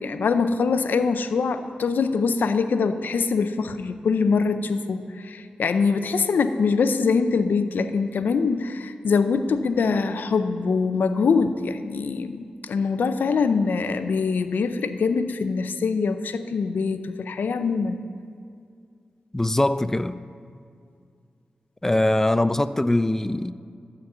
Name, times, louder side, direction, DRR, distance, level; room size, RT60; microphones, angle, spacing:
voice 1, 0.0-18.0, left 5 dB, 80° left, 0.6 m, -23 dB
voice 2, 19.3-20.2 21.8-23.5, left 1 dB, 15° left, 0.4 m, -22 dB
12.0 x 5.3 x 7.9 m
cardioid pair, 60°, 3 cm